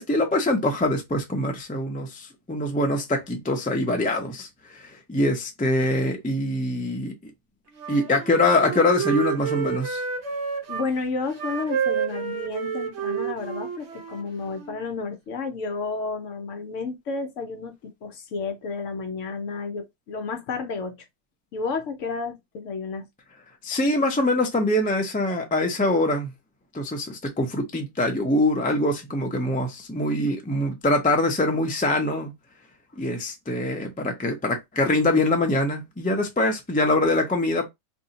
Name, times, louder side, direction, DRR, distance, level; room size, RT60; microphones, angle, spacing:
voice 1, 0.0-7.1 7.9-10.0 23.6-26.3 26.7-32.3 33.0-37.7, left 1 dB, 15° left, 0.3 m, -24 dB
Wind instrument woodwind instrument, 7.7-10.9 11.3-14.8, right 7 dB, 55° right, 1.0 m, -30 dB
voice 2, 10.7-21.0 21.5-23.1, left 4 dB, 65° left, 1.0 m, -31 dB
2.7 x 2.7 x 3.9 m
omnidirectional pair, 1.5 m